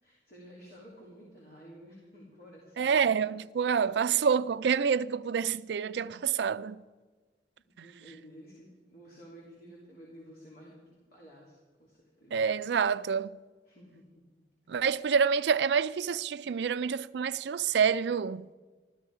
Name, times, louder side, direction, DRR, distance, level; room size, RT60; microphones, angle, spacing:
voice 1, 0.0-3.1 7.6-12.4 13.6-14.0, equal, 55° left, 3.2 m, -52 dB
voice 2, 2.8-6.8 12.3-13.3 14.7-18.5, right 6 dB, 75° right, 0.4 m, -27 dB
14.0 x 13.5 x 4.8 m
head